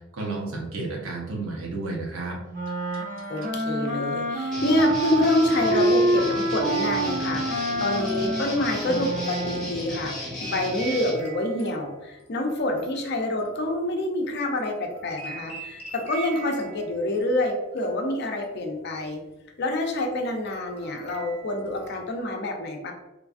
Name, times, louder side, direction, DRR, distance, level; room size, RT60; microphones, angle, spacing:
voice 1, 0.1-2.4, right 3 dB, 80° right, -1 dB, 0.8 m, -31 dB
sound 1, 2.5-9.9, right 1 dB, 35° right, 0.6 m, -27 dB
sound 2, 2.9-3.9 5.5-7.6 8.1-14.3 14.6-17.5 17.8-18.7 19.0-19.3 19.8-22.3, right 5 dB, 30° left, 0.9 m, -44 dB
voice 2, 3.3-19.2 19.6-22.9, left 1 dB, 55° left, 2 dB, 0.5 m, -27 dB
Guitar, 4.5-11.2, left 1 dB, ahead, 0.7 m, -35 dB
3.2 x 2.4 x 2.4 m, 1.0 s
head